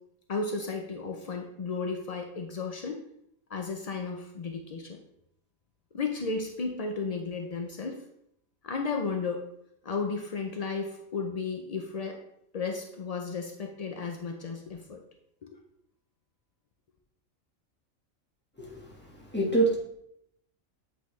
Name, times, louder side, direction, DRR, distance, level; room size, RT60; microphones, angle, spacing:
voice 1, 0.3-3.0 3.5-5.0 5.9-8.0 8.6-9.5 9.8-12.2 12.5-15.0 15.4-15.5, left 4 dB, 80° left, 3 dB, 0.3 m, -34 dB
voice 2, 18.6-19.7, right 2 dB, 10° left, -4 dB, 1.2 m, -27 dB
8.1 x 3.9 x 3.1 m, 0.76 s
omnidirectional pair, 1.4 m